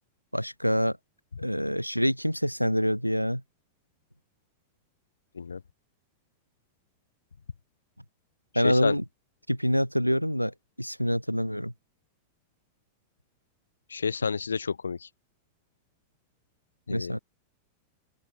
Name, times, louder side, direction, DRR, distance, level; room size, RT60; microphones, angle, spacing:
voice 1, 0.3-1.0 1.4-3.4 8.5-9.0 9.5-11.7 16.9-17.2, equal, 90° left, 2.3 m, -26 dB
voice 2, 8.5-9.0 13.9-15.1 16.9-17.2, left 5 dB, 75° left, 1.1 m, -30 dB
open air
figure-of-eight pair, 90°, 0 cm